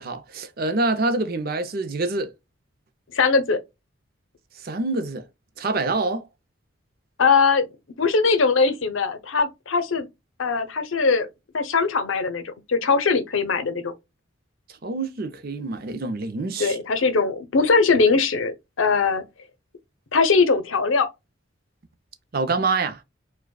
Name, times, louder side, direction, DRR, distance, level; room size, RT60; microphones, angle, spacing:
voice 1, 0.0-2.3 4.5-5.3 5.6-6.2 14.8-16.8 22.3-23.0, right 3 dB, 50° right, 0.5 m, -26 dB
voice 2, 3.1-3.6 7.2-7.7 8.0-10.1 10.4-11.3 11.5-13.9 16.6-19.2 20.1-21.1, left 4 dB, 75° left, 0.6 m, -21 dB
4.8 x 2.2 x 2.2 m
head